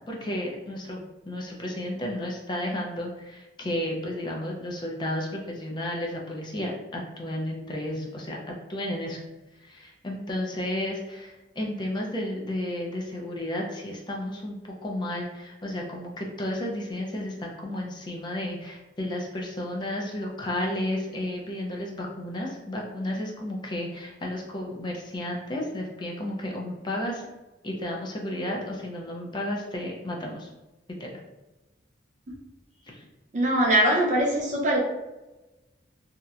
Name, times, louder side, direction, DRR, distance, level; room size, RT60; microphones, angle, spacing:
voice 1, 0.1-8.4 8.7-9.2 9.6-27.3 27.6-30.5 31.0-31.1 32.9-33.0, left 1 dB, 25° left, -1 dB, 0.4 m, -32 dB
voice 2, 33.3-34.8, right 1 dB, 40° right, -3 dB, 0.5 m, -22 dB
2.8 x 2.0 x 2.3 m, 1.1 s
head